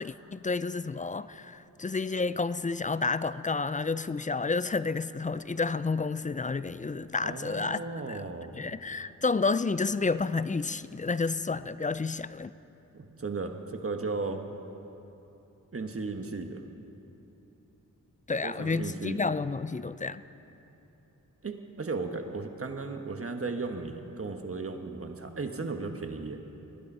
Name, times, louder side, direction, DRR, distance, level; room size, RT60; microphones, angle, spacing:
voice 1, 0.0-7.8 8.1-8.2 8.5-12.5 18.3-20.2, left 4 dB, 25° left, 15 dB, 0.3 m, -30 dB
voice 2, 7.2-8.5 12.9-14.4 15.7-16.6 18.4-19.2 21.4-26.4, right 3 dB, 45° right, 5 dB, 1.2 m, -35 dB
19.5 x 11.5 x 5.5 m, 2.9 s
wide cardioid pair, 75°, 33 cm